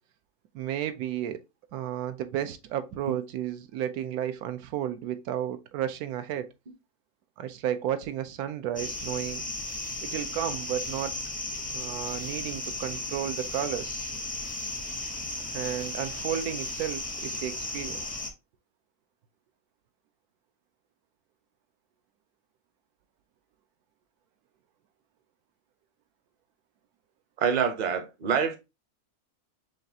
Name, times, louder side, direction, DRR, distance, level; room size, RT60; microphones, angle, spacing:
voice 1, 0.5-1.4 1.7-6.5 7.4-9.4 10.1-11.1 11.7-14.1 15.5-18.1, right 10 dB, 85° right, 1.1 m, -32 dB
sound 1, 8.8-18.3, left 2 dB, 10° left, 0.4 m, -35 dB
voice 2, 27.4-28.6, right 7 dB, 45° right, 0.5 m, -26 dB
6.3 x 2.4 x 2.7 m
omnidirectional pair, 1.6 m